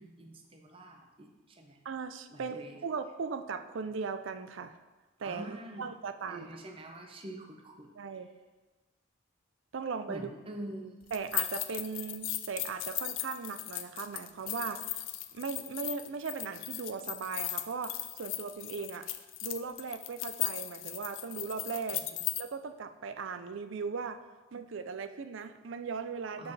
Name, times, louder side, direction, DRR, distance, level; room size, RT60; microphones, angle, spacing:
voice 1, 0.0-1.8 2.3-2.8 5.2-5.9 6.3-7.9 10.1-11.1 22.1-22.2 26.4-26.5, right 1 dB, 25° right, 3 dB, 0.7 m, -45 dB
voice 2, 1.8-4.8 5.2-6.6 8.0-8.3 9.7-10.3 11.1-15.0 15.3-19.1 19.4-22.0 22.4-24.2 24.5-26.5, right 5 dB, 70° right, 10 dB, 0.4 m, -38 dB
sound 1, 11.1-22.4, left 14 dB, 70° left, 0.4 m, -37 dB
6.4 x 5.5 x 4.0 m, 1.2 s
head